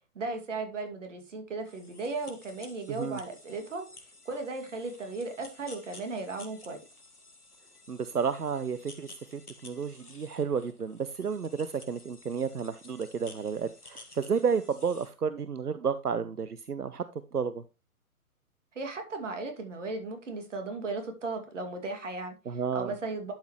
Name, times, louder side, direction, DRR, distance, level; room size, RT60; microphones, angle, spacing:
voice 1, 0.1-3.8 4.3-6.8 18.7-23.3, right 3 dB, 55° right, 2.5 m, -36 dB
sound 1, 1.7-15.1, left 3 dB, 80° left, 1.9 m, -53 dB
voice 2, 2.9-3.2 7.9-17.0 17.3-17.6 22.5-22.9, right 6 dB, 90° right, 0.7 m, -31 dB
11.5 x 5.7 x 3.1 m
figure-of-eight pair, 130°, 45 cm